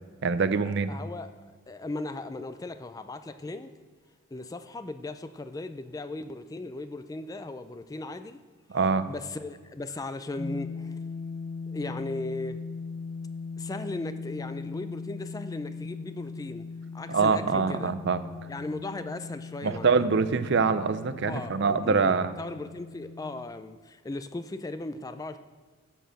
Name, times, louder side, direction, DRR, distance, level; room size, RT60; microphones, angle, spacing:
voice 1, 0.2-0.9 8.7-9.1 17.1-18.2 19.6-22.3, right 5 dB, 55° right, 12 dB, 0.5 m, -24 dB
voice 2, 0.9-1.3 1.7-3.7 4.3-8.4 9.1-10.9 11.7-12.6 13.6-16.7 16.9-17.9 18.5-19.9 21.2-25.4, left 2 dB, 15° left, 10 dB, 0.3 m, -37 dB
sound 1, 10.4-23.4, left 4 dB, 45° left, 1.1 m, -39 dB
12.0 x 4.6 x 7.6 m, 1.5 s
head